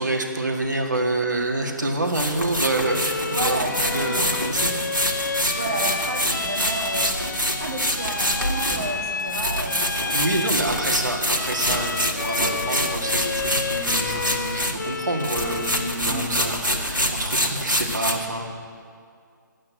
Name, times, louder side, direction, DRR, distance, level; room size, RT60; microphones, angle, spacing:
voice 1, 0.0-3.6 3.9-4.8 10.1-18.5, right 2 dB, 65° right, 2 dB, 2.0 m, -27 dB
sound 1, 2.1-14.9 15.2-18.1, equal, 90° right, 1.9 m, -26 dB
Bowed string instrument, 2.7-16.1, left 4 dB, 65° left, 0.4 m, -31 dB
voice 2, 3.2-4.8 5.5-7.1 7.6-10.2 12.4-12.6 16.1-16.4, right 2 dB, 45° right, 0 dB, 2.2 m, -31 dB
sound 2, 8.7-9.0 9.4-9.5 10.6-11.1 11.4-12.4 13.3-14.6 15.3-16.6 16.8-16.9, equal, 10° right, 4.4 m, -39 dB
11.0 x 8.7 x 9.8 m, 2.2 s
figure-of-eight pair, 140°, 10 cm